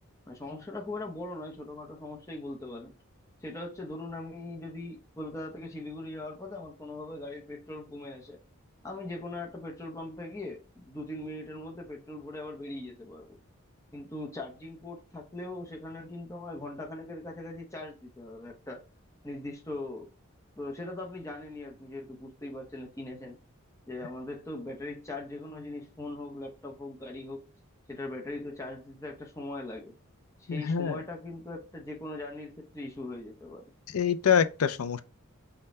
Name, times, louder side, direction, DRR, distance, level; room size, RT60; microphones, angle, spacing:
voice 1, 0.3-2.9 3.4-8.4 8.8-13.4 13.9-18.8 19.2-20.1 20.6-23.4 23.9-27.5 27.9-29.9 30.4-33.7, left 2 dB, 15° left, 0.7 m, -40 dB
voice 2, 30.5-31.0 33.9-35.0, left 7 dB, 90° left, 0.5 m, -25 dB
5.4 x 2.3 x 4.1 m
head